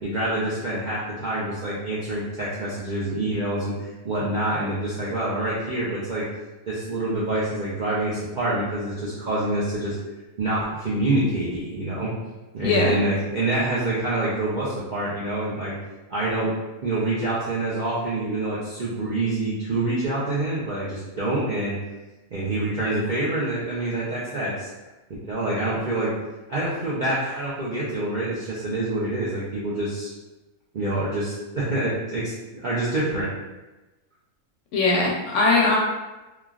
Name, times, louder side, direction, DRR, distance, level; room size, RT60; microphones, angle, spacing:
voice 1, 0.0-6.3 6.7-10.0 10.4-12.1 12.5-15.7 16.1-16.5 16.8-21.8 22.3-24.7 25.2-26.1 26.5-30.1 30.7-33.3, right 2 dB, 60° right, -9 dB, 0.4 m, -26 dB
voice 2, 12.6-13.0 34.7-35.8, left 2 dB, 65° left, -2 dB, 0.8 m, -20 dB
3.1 x 2.4 x 2.4 m, 1.1 s
omnidirectional pair, 1.5 m